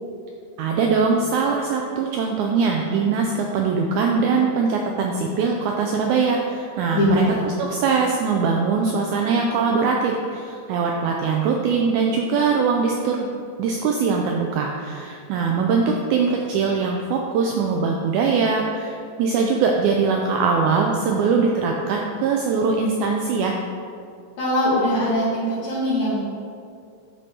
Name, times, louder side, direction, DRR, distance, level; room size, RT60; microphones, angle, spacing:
voice 1, 0.6-7.2 7.6-13.3 13.6-23.5, right 5 dB, 85° right, 1 dB, 1.7 m, -22 dB
voice 2, 6.9-7.4 24.4-26.2, left 1 dB, 65° left, -9 dB, 2.3 m, -21 dB
11.0 x 4.3 x 3.3 m, 2.4 s
omnidirectional pair, 4.0 m